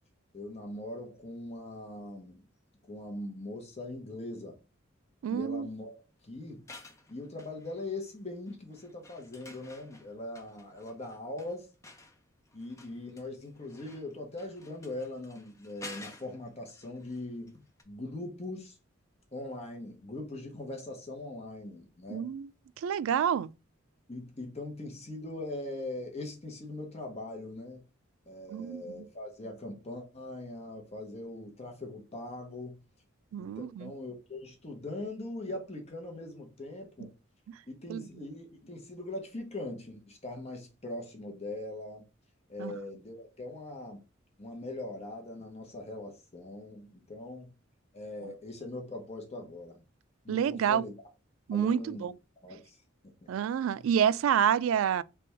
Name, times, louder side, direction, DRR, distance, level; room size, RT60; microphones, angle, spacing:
voice 1, 0.3-2.4 2.8-4.6 5.3-6.0 6.2-6.6 7.1-11.7 12.5-17.6 17.8-18.8 19.3-22.3 24.1-27.8 28.3-32.8 33.4-37.1 37.7-42.0 42.5-44.0 44.4-47.5 47.9-49.8 50.2-50.9 51.5-52.1 52.4-52.8 53.0-53.5 53.7-53.9, left 2 dB, 30° left, 1.0 m, -41 dB
voice 2, 5.2-5.7 22.1-22.5 22.8-23.5 28.5-29.1 33.3-33.9 37.9-38.0 42.6-42.7 50.3-50.8 51.5-52.1 53.3-55.0, right 8 dB, 90° right, 0.3 m, -28 dB
sound 1, 6.5-8.1 8.5-17.5 17.8-17.9, left 2 dB, 15° left, 0.7 m, -52 dB
3.4 x 3.4 x 4.4 m
head